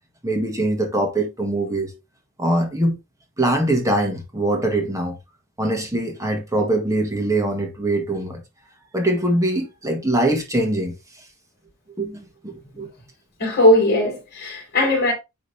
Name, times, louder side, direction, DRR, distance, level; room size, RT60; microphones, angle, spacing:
voice 1, 0.2-1.9 2.4-3.0 3.4-5.2 5.6-8.4 8.9-10.9 12.0-12.9, right 1 dB, 15° right, 1.7 m, -22 dB
voice 2, 13.4-15.1, left 1 dB, 50° left, 4.1 m, -18 dB
10.0 x 3.7 x 3.3 m
head